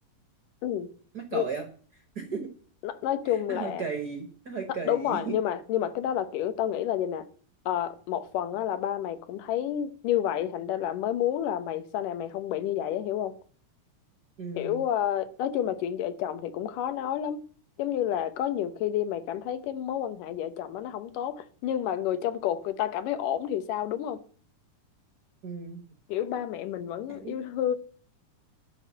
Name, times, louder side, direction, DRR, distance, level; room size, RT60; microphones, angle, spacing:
voice 1, 1.1-1.7 1.9-2.5 3.3-5.3 14.4-14.8 25.4-25.8 27.1-27.4, right 5 dB, 50° right, 1.2 m, -35 dB
voice 2, 2.8-3.8 4.9-7.3 7.7-13.4 14.5-17.4 17.8-24.2 26.1-27.8, left 10 dB, 80° left, 2.6 m, -30 dB
11.5 x 5.2 x 7.5 m
omnidirectional pair, 3.7 m